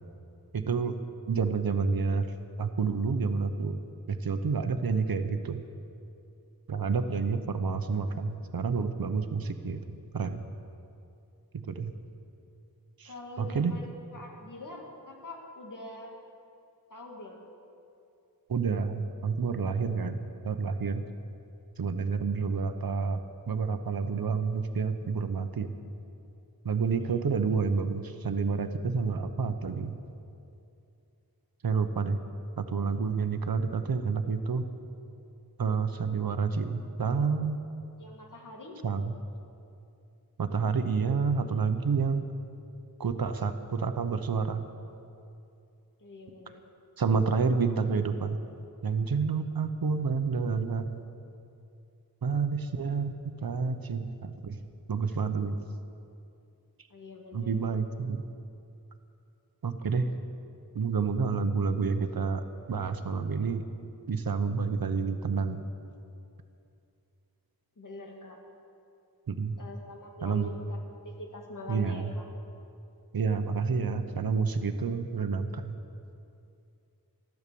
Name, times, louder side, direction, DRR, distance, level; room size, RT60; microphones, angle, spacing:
voice 1, 0.5-0.9 1.3-2.3 2.6-3.8 4.1-5.6 6.7-10.5 11.5-12.0 13.0-13.7 18.5-21.0 21.8-25.7 26.6-29.9 31.6-32.2 32.6-34.6 35.6-37.6 38.8-39.1 40.4-42.3 43.0-44.7 47.0-48.4 48.8-51.0 52.2-53.1 53.4-55.6 57.3-58.2 59.6-60.1 60.7-63.6 64.1-65.6 69.3-69.6 70.2-70.5 71.7-72.1 73.1-75.8, right 5 dB, 70° right, 8 dB, 0.9 m, -29 dB
voice 2, 13.1-16.1 16.9-17.4 27.0-27.2 38.0-38.8 46.0-46.6 56.9-57.5 67.8-68.4 69.6-72.3, left 2 dB, 55° left, 1 dB, 2.2 m, -44 dB
14.5 x 11.5 x 6.9 m, 2.6 s
wide cardioid pair, 95°, 37 cm